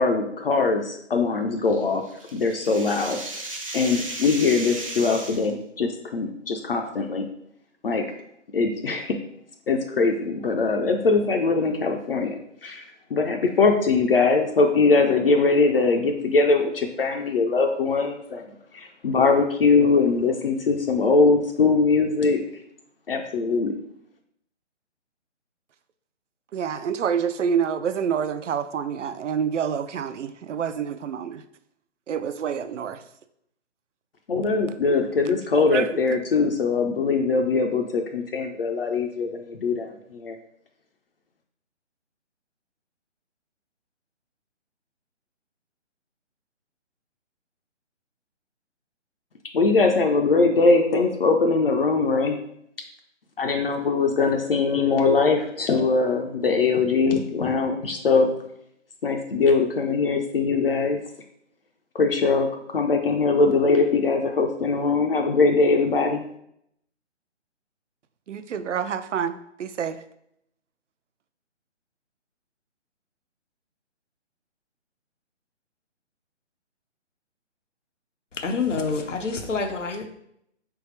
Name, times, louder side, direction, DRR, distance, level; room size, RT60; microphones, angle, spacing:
voice 1, 0.0-2.0 2.3-3.2 3.7-7.3 7.8-8.0 8.5-9.2 9.7-12.8 13.1-18.4 18.7-22.4 23.1-23.8 34.3-40.4 49.5-52.4 53.4-58.3 59.0-61.0 61.9-66.2, left 4 dB, 50° left, 4 dB, 0.5 m, -21 dB
sound 1, 1.7-5.5, right 2 dB, 30° right, 0.4 m, -35 dB
voice 2, 26.5-31.4 32.1-33.0 35.6-35.9 68.3-70.0, right 7 dB, 80° right, 12 dB, 0.5 m, -27 dB
voice 3, 78.3-80.1, left 4 dB, 85° left, 5 dB, 0.8 m, -27 dB
4.0 x 3.4 x 3.1 m, 0.73 s
figure-of-eight pair, 150°, 36 cm